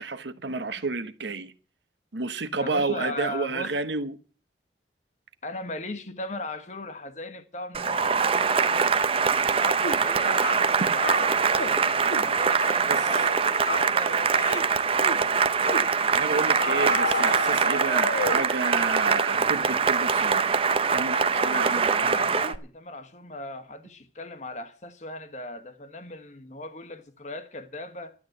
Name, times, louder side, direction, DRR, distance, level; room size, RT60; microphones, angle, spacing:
voice 1, 0.0-1.5 2.1-4.1 10.8-10.9 12.9-13.0 16.1-20.6 20.9-22.0, right 3 dB, 85° right, 1.1 m, -30 dB
voice 2, 2.5-3.8 5.4-10.5 10.8-15.4 21.3-28.1, left 2 dB, 40° left, 1.3 m, -38 dB
Cheering / Applause, 7.7-22.6, right 5 dB, 30° right, 0.6 m, -23 dB
sound 1, 9.8-10.0 10.4-10.7 11.0-11.7 12.1-12.3 12.6-12.8 13.1-13.4 13.6-13.9 14.4-14.7 15.0-15.2 15.6-15.9 16.5-18.5, left 3 dB, 85° left, 2.0 m, -31 dB
12.0 x 8.6 x 7.9 m
head